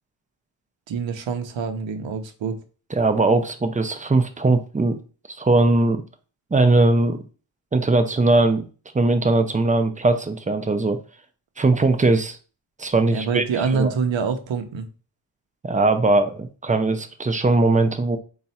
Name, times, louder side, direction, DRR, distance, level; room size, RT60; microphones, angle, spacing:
voice 1, 0.9-2.6 13.1-14.9, right 5 dB, 80° right, 7 dB, 0.7 m, -25 dB
voice 2, 2.9-5.0 5.4-6.0 6.5-7.2 7.7-8.7 8.9-11.0 11.6-12.4 12.8-13.4 13.7-13.9 15.6-18.2, right 2 dB, 20° right, 7 dB, 0.4 m, -20 dB
4.1 x 2.4 x 4.1 m, 0.36 s
wide cardioid pair, 155°, 45 cm